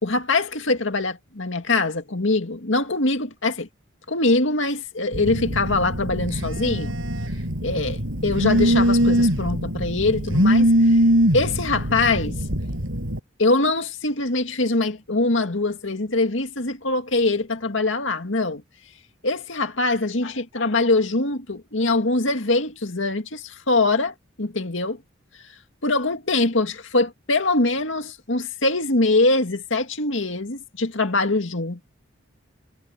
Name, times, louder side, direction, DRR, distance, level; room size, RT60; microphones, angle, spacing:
voice 1, 0.0-3.7 4.1-7.0 7.6-11.0 11.3-12.4 13.4-18.6 19.2-25.0 25.8-31.8, left 2 dB, 70° left, 2.2 m, -23 dB
Telephone, 5.1-13.2, equal, 80° right, 7.2 m, -22 dB
head